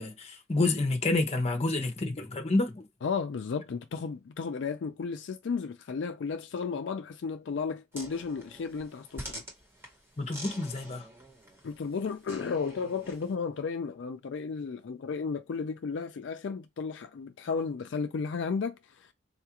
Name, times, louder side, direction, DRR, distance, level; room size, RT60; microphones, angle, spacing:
voice 1, 0.0-2.9 10.2-11.1, left 2 dB, 35° left, 0.7 m, -29 dB
voice 2, 3.0-9.4 11.6-19.1, left 5 dB, 70° left, 0.4 m, -34 dB
sound 1, 7.9-13.3, right 1 dB, 10° right, 1.1 m, -46 dB
4.1 x 2.4 x 2.8 m
head